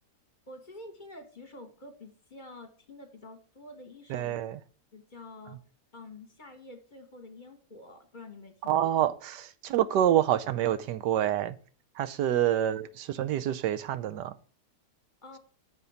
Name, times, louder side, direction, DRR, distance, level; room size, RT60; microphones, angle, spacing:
voice 1, 0.5-4.4 4.9-5.6 5.9-8.8 15.2-15.4, left 2 dB, 30° left, 1.5 m, -48 dB
voice 2, 4.1-4.6 8.6-11.6 12.0-14.3, right 11 dB, 85° right, 1.3 m, -27 dB
6.8 x 5.1 x 7.0 m
omnidirectional pair, 1.8 m